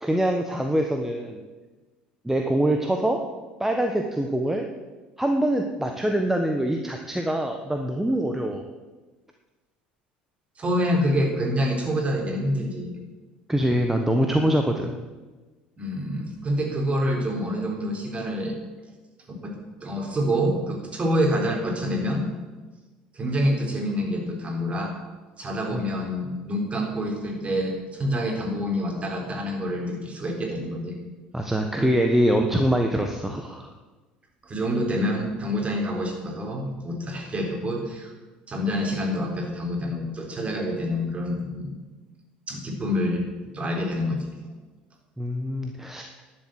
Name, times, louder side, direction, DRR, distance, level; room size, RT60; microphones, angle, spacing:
voice 1, 0.0-1.4 2.2-3.2 3.6-4.7 5.2-8.6 13.5-14.9 25.7-25.8 31.3-33.7 45.2-46.0, right 1 dB, 5° right, 4 dB, 1.2 m, -24 dB
voice 2, 10.6-13.0 15.8-18.5 19.3-19.5 19.8-22.3 23.1-24.9 25.4-30.9 31.8-31.9 34.4-38.1 38.5-41.7 42.5-43.3 43.5-44.3, equal, 25° right, 0 dB, 3.9 m, -27 dB
11.5 x 7.9 x 7.7 m, 1.3 s
hypercardioid pair, 65°, 5 cm